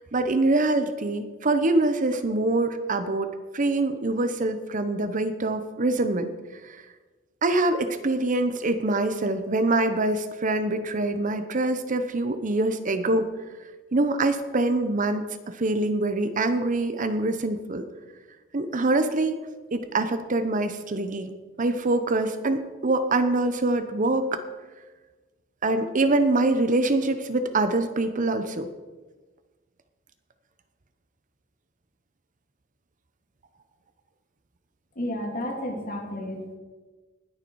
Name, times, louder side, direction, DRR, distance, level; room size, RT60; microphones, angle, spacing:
voice 1, 0.1-3.3 3.5-6.3 7.4-13.3 13.9-17.9 18.5-19.4 19.7-21.3 21.6-24.4 25.6-28.7, right 2 dB, 40° right, 9 dB, 0.8 m, -24 dB
voice 2, 35.0-36.6, left 1 dB, 45° left, 0 dB, 2.7 m, -32 dB
19.5 x 6.7 x 4.6 m, 1.3 s
head